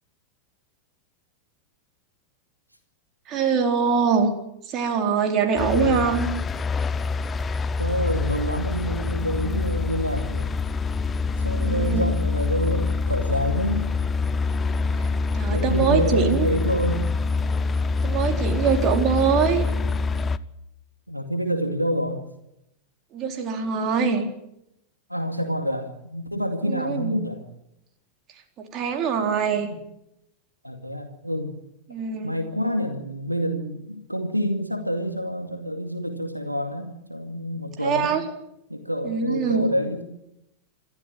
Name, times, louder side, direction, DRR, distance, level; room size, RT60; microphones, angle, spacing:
voice 1, 3.3-4.3 4.6-6.3 11.6-12.1 14.9-15.1 15.3-16.5 18.0-19.7 23.1-24.3 26.7-27.1 28.6-29.7 31.9-32.3 37.8-38.2 39.0-39.7, right 6 dB, 35° right, 4 dB, 4.1 m, -23 dB
sound 1, 5.6-20.4, left 4 dB, 20° left, 0.8 m, -25 dB
voice 2, 5.7-6.1 7.8-10.5 11.4-13.9 15.5-17.0 21.1-22.2 25.1-27.4 30.6-31.5 32.2-38.2 38.7-40.0, equal, 90° right, 6 dB, 2.3 m, -27 dB
27.5 x 13.5 x 8.9 m, 0.82 s
figure-of-eight pair, 90°, 0 cm